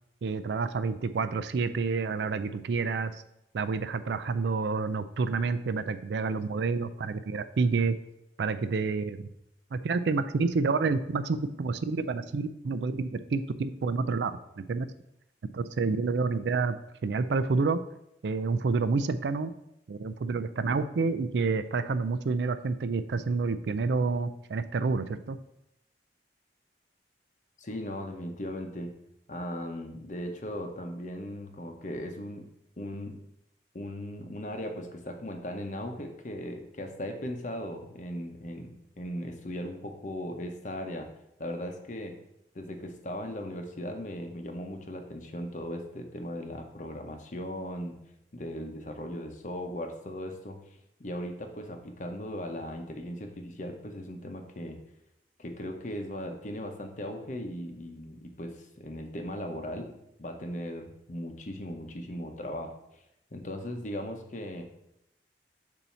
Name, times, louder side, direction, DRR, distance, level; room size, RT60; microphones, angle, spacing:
voice 1, 0.2-3.2 3.5-8.0 8.4-9.3 9.7-14.9 15.5-16.8 17.0-17.8 18.2-19.5 19.9-25.4, right 4 dB, 75° right, 12 dB, 0.4 m, -29 dB
voice 2, 27.6-28.9 29.3-32.5 32.8-33.2 33.7-41.1 41.4-42.1 42.5-48.0 48.3-50.6 51.0-54.8 55.4-59.9 60.2-63.0 63.3-64.6, left 1 dB, 45° left, 4 dB, 0.8 m, -38 dB
7.1 x 2.7 x 5.6 m, 0.81 s
head